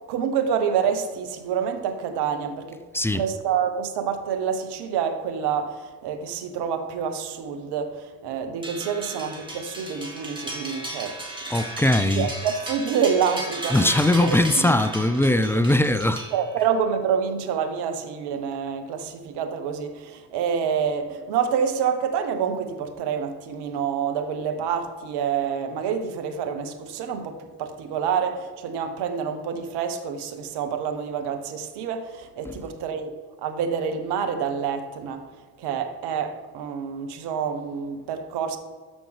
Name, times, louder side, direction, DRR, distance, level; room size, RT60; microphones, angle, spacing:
voice 1, 0.1-2.8 3.1-11.2 12.1-14.4 14.6-14.8 16.3-33.1 33.4-35.3 35.6-38.6, right 7 dB, 65° right, 1.0 m, -27 dB
sound 1, 8.6-16.8, right 1 dB, 10° right, 2.4 m, -35 dB
voice 2, 11.5-12.3 13.7-16.3 32.4-32.6, left 1 dB, 5° left, 0.4 m, -20 dB
13.5 x 5.2 x 3.3 m
hypercardioid pair, 45°, 44 cm